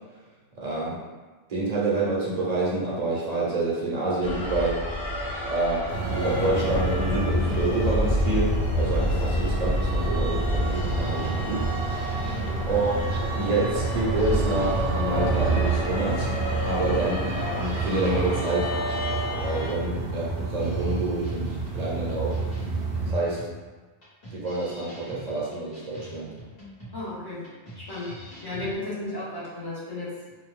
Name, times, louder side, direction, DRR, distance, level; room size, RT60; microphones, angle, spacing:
voice 1, 0.6-1.0 1.5-4.8 5.5-5.8 6.1-11.7 12.7-16.3 16.6-18.7 19.4-22.4 23.1-23.5 24.3-26.3, right 2 dB, 45° right, -6 dB, 0.7 m, -27 dB
sound 1, 4.2-19.7, equal, 85° left, 1.1 m, -29 dB
sound 2, 5.9-23.1, right 3 dB, 75° right, 0.9 m, -30 dB
sound 3, 9.2-28.7, equal, 60° left, 1.3 m, -45 dB
voice 2, 12.2-12.6 16.8-17.0 26.9-27.5 27.8-28.1 28.4-30.1, left 2 dB, 25° left, -7 dB, 0.7 m, -34 dB
2.6 x 2.2 x 3.1 m, 1.3 s
omnidirectional pair, 1.1 m